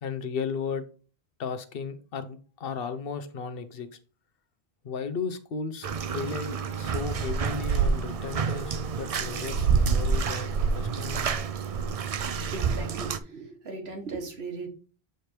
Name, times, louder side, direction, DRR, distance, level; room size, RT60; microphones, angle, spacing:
voice 1, 0.0-0.8 1.4-3.9 4.8-11.4, left 5 dB, 65° left, 10 dB, 1.0 m, -35 dB
Bathtub (filling or washing), 5.8-13.2, right 5 dB, 50° right, 0.4 m, -28 dB
voice 2, 12.5-14.7, right 3 dB, 75° right, 3 dB, 1.6 m, -37 dB
7.8 x 3.3 x 4.4 m, 0.38 s
omnidirectional pair, 1.1 m